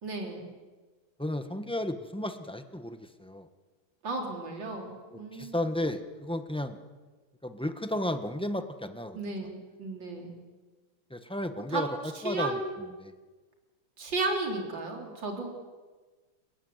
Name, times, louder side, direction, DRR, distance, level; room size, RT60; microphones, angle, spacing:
voice 1, 0.0-0.5 4.0-5.6 9.1-10.4 11.7-11.8 12.1-12.7 14.0-15.5, right 3 dB, 55° right, 1 dB, 4.4 m, -34 dB
voice 2, 1.2-3.5 5.1-6.8 7.4-9.2 11.1-12.6 13.0-13.1, left 1 dB, 5° left, 8 dB, 0.7 m, -33 dB
30.0 x 15.0 x 9.5 m, 1.3 s
omnidirectional pair, 2.4 m